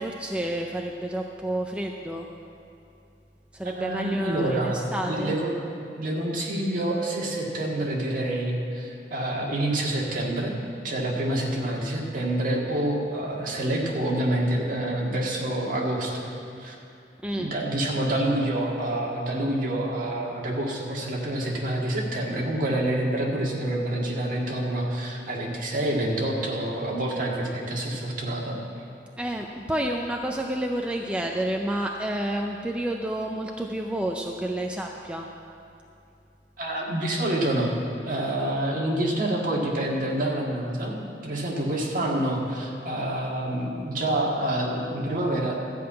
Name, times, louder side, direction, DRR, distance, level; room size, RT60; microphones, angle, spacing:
voice 1, 0.0-2.3 3.5-5.3 17.2-17.5 29.2-35.3, right 1 dB, 5° right, 1 dB, 0.4 m, -29 dB
voice 2, 3.6-5.6 6.0-10.5 10.8-16.8 17.4-28.6 36.6-37.8 38.1-45.5, right 1 dB, 50° right, -2 dB, 1.9 m, -27 dB
13.0 x 5.6 x 8.7 m, 2.7 s
head